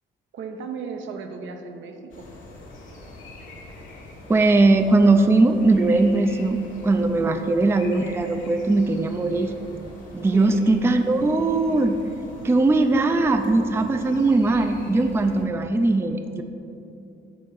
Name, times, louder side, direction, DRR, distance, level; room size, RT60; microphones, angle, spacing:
voice 1, 0.3-2.3 7.2-7.4 10.3-10.6, right 5 dB, 70° right, 5 dB, 0.7 m, -35 dB
sound 1, 2.1-15.4, left 2 dB, 80° left, 1.7 m, -43 dB
voice 2, 4.3-9.5 10.1-12.0 12.4-16.4, right 2 dB, 10° right, 7 dB, 0.4 m, -20 dB
6.9 x 3.7 x 6.3 m, 2.8 s
cardioid pair, 90°, 20 cm